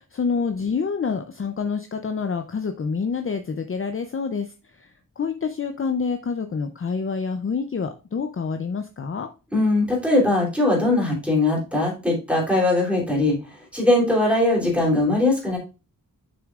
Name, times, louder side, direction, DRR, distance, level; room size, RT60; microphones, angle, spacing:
voice 1, 0.0-4.9 5.2-9.3, left 5 dB, 35° left, 6 dB, 0.5 m, -27 dB
voice 2, 9.5-13.3 13.7-15.6, left 2 dB, 5° right, -3 dB, 3.1 m, -20 dB
7.0 x 6.1 x 2.4 m, 0.31 s
wide cardioid pair, 125°, 35 cm